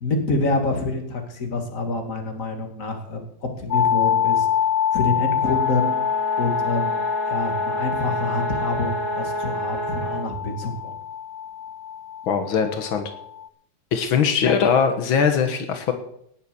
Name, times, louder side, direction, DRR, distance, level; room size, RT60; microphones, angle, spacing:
voice 1, 0.0-4.5 4.9-6.0 6.4-7.0 7.3-10.9, left 2 dB, 40° left, 5 dB, 2.6 m, -27 dB
sound 1, 3.7-13.5, left 9 dB, 70° left, 1.4 m, -26 dB
sound 2, 5.4-10.3, right 1 dB, 80° right, 5.8 m, -29 dB
voice 2, 12.3-13.1 13.9-15.9, left 6 dB, 85° left, 7 dB, 2.1 m, -21 dB
18.0 x 7.3 x 6.9 m, 0.71 s
omnidirectional pair, 2.1 m